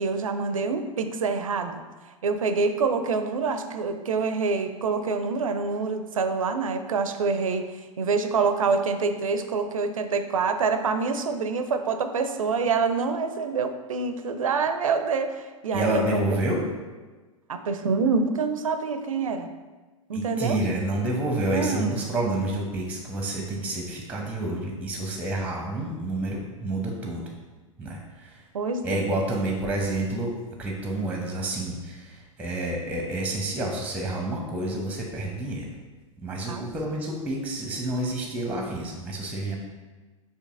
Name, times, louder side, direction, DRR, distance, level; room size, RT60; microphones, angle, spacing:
voice 1, 0.0-16.4 17.5-19.5 20.1-20.6 21.5-22.0 28.5-29.2 36.5-36.6, right 4 dB, 80° right, 8 dB, 0.4 m, -26 dB
voice 2, 15.7-16.6 20.1-27.2 27.8-28.4 28.8-35.7 36.2-39.6, right 1 dB, 10° right, 0 dB, 0.8 m, -29 dB
6.5 x 2.8 x 2.6 m, 1.3 s
figure-of-eight pair, 95°, 17 cm